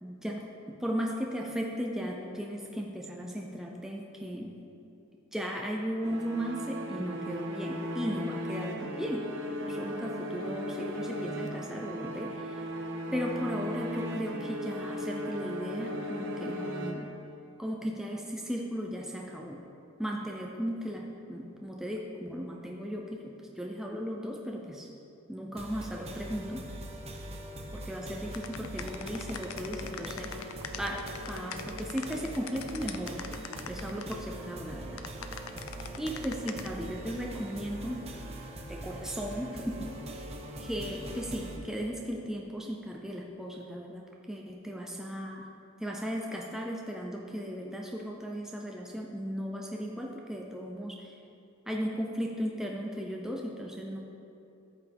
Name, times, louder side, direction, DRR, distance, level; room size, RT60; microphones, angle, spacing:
voice 1, 0.0-4.6 5.3-9.4 9.6-12.6 13.1-17.2 17.6-19.6 20.0-24.9 25.3-26.7 27.7-30.5 30.8-33.2 33.7-35.0 36.0-38.2 38.7-40.2 40.6-45.5 45.8-51.1 51.7-54.0, equal, ahead, -1 dB, 0.6 m, -36 dB
sound 1, 6.0-17.5, equal, 60° right, 0.9 m, -36 dB
sound 2, 25.6-41.6, right 1 dB, 30° right, 1.0 m, -42 dB
sound 3, 28.3-34.1 34.9-36.7, left 8 dB, 70° left, 0.5 m, -41 dB
13.5 x 8.0 x 3.6 m, 2.8 s
head